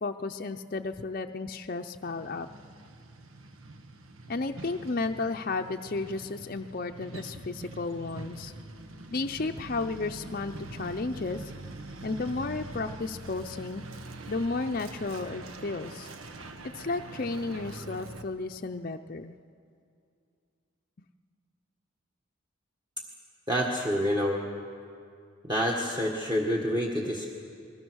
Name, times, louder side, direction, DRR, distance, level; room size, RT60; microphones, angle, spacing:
voice 1, 0.0-2.5 4.3-8.5 9.1-11.5 12.0-13.8 14.3-16.1 16.6-19.3, left 3 dB, 45° left, 5 dB, 0.6 m, -33 dB
Truck, 2.0-18.2, right 2 dB, 90° right, 1.4 m, -44 dB
voice 2, 23.5-24.4 25.4-27.3, equal, 20° right, 0 dB, 1.6 m, -27 dB
29.0 x 21.0 x 6.3 m, 2.4 s
head